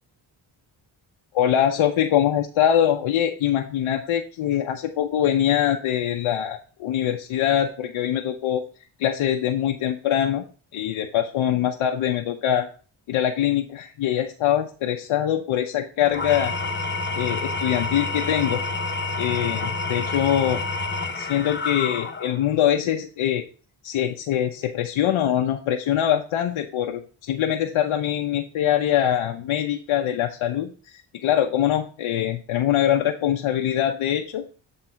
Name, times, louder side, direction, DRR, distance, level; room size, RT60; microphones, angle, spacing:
voice 1, 1.3-8.6 9.0-10.4 10.7-12.7 13.1-16.5 17.2-18.6 19.2-20.6 21.2-23.4 23.8-34.4, left 10 dB, 80° left, 3 dB, 0.7 m, -23 dB
Engine / Tools, 16.0-22.5, left 3 dB, 25° left, 1.0 m, -28 dB
8.0 x 3.4 x 5.6 m, 0.39 s
cardioid pair, 60°, 48 cm